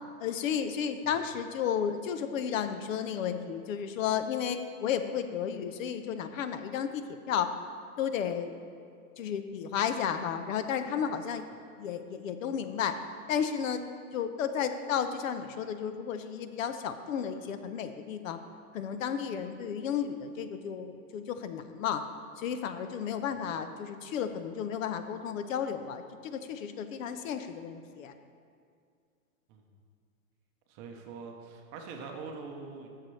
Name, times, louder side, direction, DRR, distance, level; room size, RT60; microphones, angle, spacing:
voice 1, 0.2-7.6 8.0-8.5 9.2-11.5 11.8-13.0 13.3-13.8 14.1-18.4 18.7-22.1 22.4-28.1, left 8 dB, 60° left, 9 dB, 0.6 m, -33 dB
voice 2, 30.7-32.9, right 4 dB, 25° right, 2 dB, 0.7 m, -43 dB
12.5 x 6.6 x 3.2 m, 2.2 s
hypercardioid pair, 145°, 45 cm